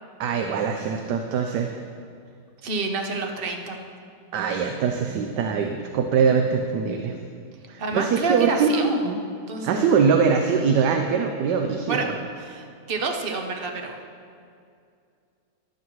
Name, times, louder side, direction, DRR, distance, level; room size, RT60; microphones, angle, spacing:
voice 1, 0.2-1.8 4.3-7.2 7.7-9.2 9.6-12.2, right 6 dB, 85° right, 4 dB, 1.3 m, -23 dB
voice 2, 2.6-3.9 7.8-9.1 9.5-9.9 11.9-12.1 12.4-14.0, right 3 dB, 40° right, 3 dB, 1.0 m, -28 dB
13.0 x 11.5 x 3.2 m, 2.3 s
omnidirectional pair, 1.8 m